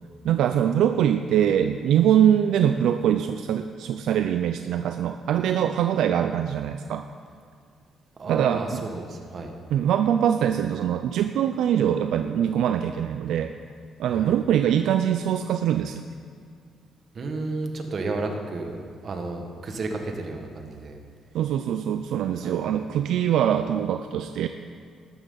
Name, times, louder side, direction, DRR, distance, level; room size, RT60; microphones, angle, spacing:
voice 1, 0.2-7.1 8.3-8.8 9.7-13.5 14.0-16.1 21.3-24.5, right 9 dB, 80° right, 8 dB, 0.4 m, -23 dB
voice 2, 8.2-9.5 14.1-14.3 17.1-21.0 22.4-22.6, right 3 dB, 50° right, 4 dB, 1.7 m, -32 dB
13.5 x 12.0 x 4.0 m, 2.2 s
cardioid pair, 90°, 0 cm